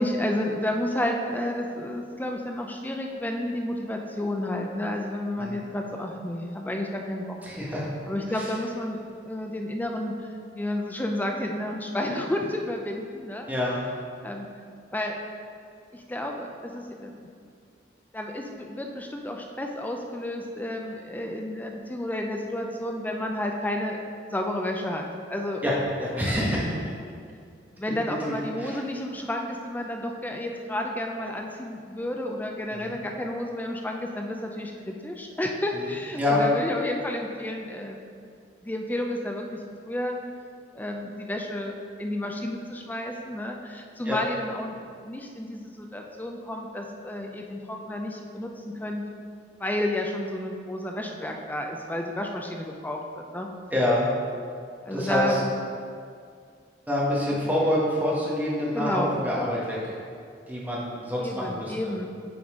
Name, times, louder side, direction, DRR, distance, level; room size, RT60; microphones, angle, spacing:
voice 1, 0.0-7.4 8.1-10.1 10.5-13.5 14.2-14.5 14.9-15.2 15.9-17.3 18.1-24.0 24.3-25.6 27.8-38.0 38.6-39.6 39.9-40.2 40.7-44.8 45.0-49.0 49.6-53.5 54.8-55.5 57.3-57.7 58.7-59.2 61.2-62.1, left 1 dB, 10° left, 2 dB, 0.4 m, -31 dB
voice 2, 7.4-7.9 8.3-8.5 13.5-13.8 25.6-26.9 28.0-28.8 32.7-33.0 36.1-36.4 44.0-44.2 53.7-54.1 54.9-55.4 56.9-59.9 60.5-61.7, left 1 dB, 10° right, -5 dB, 1.2 m, -26 dB
9.3 x 4.0 x 3.6 m, 2.2 s
head